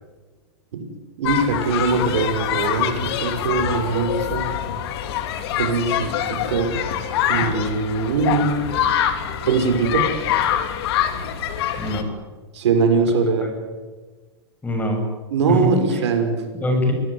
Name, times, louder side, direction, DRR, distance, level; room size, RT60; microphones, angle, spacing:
sound 1, 1.2-12.0, left 9 dB, 65° left, 3.2 m, -25 dB
voice 1, 1.2-4.5 5.6-6.8 7.3-8.7 9.5-10.1 12.5-13.5 15.3-16.4, right 4 dB, 80° right, 6 dB, 5.7 m, -21 dB
voice 2, 11.8-12.1 13.4-13.5 14.6-15.0 15.5-16.1 16.5-16.9, equal, 10° left, 4 dB, 7.1 m, -23 dB
25.5 x 18.0 x 9.8 m, 1.3 s
hypercardioid pair, 135°, 14 cm